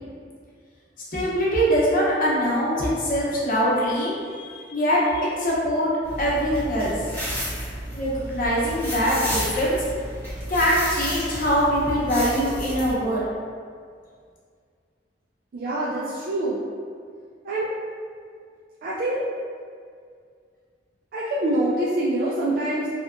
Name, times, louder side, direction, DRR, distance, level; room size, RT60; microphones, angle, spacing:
voice 1, 1.1-5.9 6.2-6.9 7.9-9.8 10.5-13.3, equal, 50° left, -6 dB, 0.7 m, -23 dB
sound 1, 6.0-12.9, equal, 10° left, 0.7 m, -32 dB
voice 2, 15.5-16.6 17.4-17.7 18.8-19.2 21.1-22.9, right 1 dB, 55° right, -7 dB, 0.3 m, -25 dB
2.8 x 2.4 x 2.2 m, 2.1 s
head